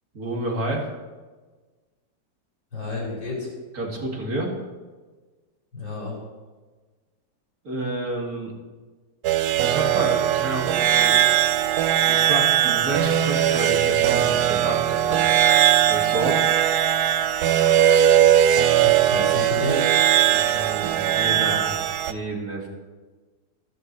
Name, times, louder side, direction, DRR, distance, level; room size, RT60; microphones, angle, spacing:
voice 1, 0.1-0.9 3.7-4.6 7.6-8.5 9.6-11.3 12.1-15.2 15.9-16.4 20.3-22.7, right 2 dB, 50° right, -1 dB, 2.8 m, -30 dB
voice 2, 2.7-3.5 5.7-6.2 18.8-19.9, left 2 dB, 85° left, -5 dB, 5.3 m, -30 dB
sound 1, 9.2-22.1, right 10 dB, 70° right, 1.0 m, -19 dB
15.0 x 13.5 x 3.2 m, 1.3 s
omnidirectional pair, 2.0 m